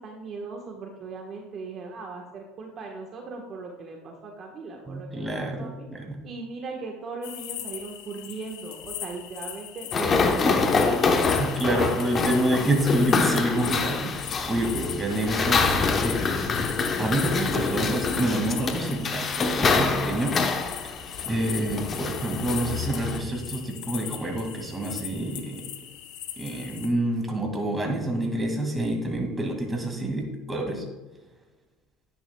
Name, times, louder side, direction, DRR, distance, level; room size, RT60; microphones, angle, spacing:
voice 1, 0.0-5.9 6.2-11.0, right 3 dB, 40° right, 1 dB, 1.3 m, -38 dB
voice 2, 4.9-6.2 11.4-16.5 17.0-20.4 20.8-20.9 21.3-25.6 26.4-30.8, right 1 dB, 15° right, 2 dB, 2.1 m, -28 dB
sound 1, 7.2-26.9, left 11 dB, 85° left, 1.1 m, -39 dB
sound 2, 9.9-23.2, left 4 dB, 30° left, 1.0 m, -26 dB
10.5 x 10.0 x 2.3 m, 1.2 s
supercardioid pair, 120°, 0 cm